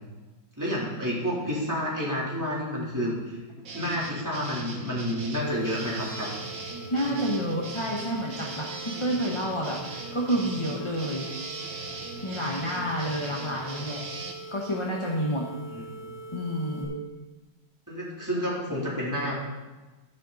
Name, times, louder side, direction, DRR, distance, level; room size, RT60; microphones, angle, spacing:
voice 1, 0.6-6.3 15.7-16.1 17.9-19.4, equal, 10° right, -6 dB, 3.5 m, -30 dB
sound 1, 3.6-14.3, right 3 dB, 75° right, 2.2 m, -39 dB
sound 2, 5.4-16.8, right 3 dB, 40° left, 3.5 m, -43 dB
voice 2, 6.9-11.3 12.2-14.0 14.5-15.5 16.3-16.9, equal, 20° left, -2 dB, 1.0 m, -29 dB
12.5 x 10.5 x 4.1 m, 1.2 s
omnidirectional pair, 2.1 m